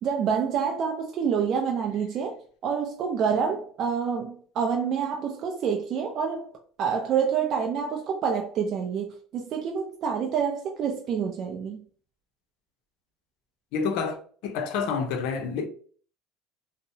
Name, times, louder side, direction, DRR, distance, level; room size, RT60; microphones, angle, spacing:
voice 1, 0.0-11.8, right 6 dB, 50° right, 0.4 m, -27 dB
voice 2, 13.7-14.2 14.4-15.7, left 5 dB, 75° left, 0.5 m, -28 dB
2.7 x 2.0 x 2.7 m
supercardioid pair, 120°, 0 cm